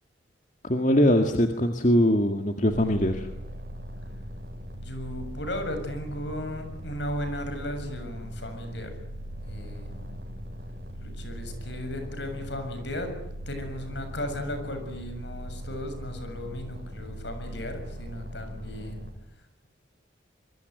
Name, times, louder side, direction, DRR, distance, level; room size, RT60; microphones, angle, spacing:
voice 1, 0.6-3.3, equal, 40° left, 5 dB, 2.0 m, -22 dB
sound 1, 2.7-19.1, equal, 55° right, 6.2 m, -39 dB
voice 2, 4.8-8.9 9.5-10.2 11.0-13.1 13.5-19.1, left 1 dB, 70° left, 7 dB, 7.0 m, -36 dB
25.0 x 23.5 x 9.4 m, 0.80 s
head